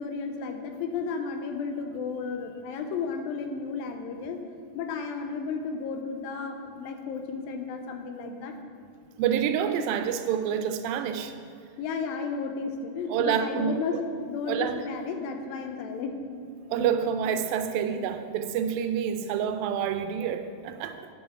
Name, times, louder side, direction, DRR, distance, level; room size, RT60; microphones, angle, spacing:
voice 1, 0.0-4.4 4.8-8.5 11.8-16.2, left 5 dB, 80° left, 5 dB, 2.5 m, -33 dB
voice 2, 9.2-11.3 13.1-14.0 14.5-14.8 16.7-21.1, right 8 dB, 85° right, 9 dB, 2.3 m, -28 dB
9.6 x 5.5 x 5.7 m, 2.4 s
omnidirectional pair, 4.1 m